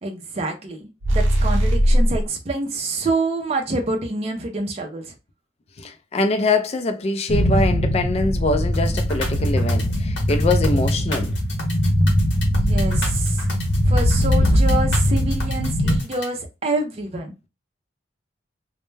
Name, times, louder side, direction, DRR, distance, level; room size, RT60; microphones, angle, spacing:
voice 1, 0.0-5.1 12.4-13.5 13.9-17.3, right 2 dB, 35° right, 0.4 m, -27 dB
sound 1, 1.0-2.2, equal, 90° right, 0.6 m, -18 dB
voice 2, 5.8-11.3, left 3 dB, 35° left, 0.3 m, -23 dB
sound 2, 7.3-16.0, equal, 90° left, 0.6 m, -20 dB
sound 3, 8.7-16.3, left 2 dB, 65° left, 0.9 m, -34 dB
2.1 x 2.1 x 3.1 m
head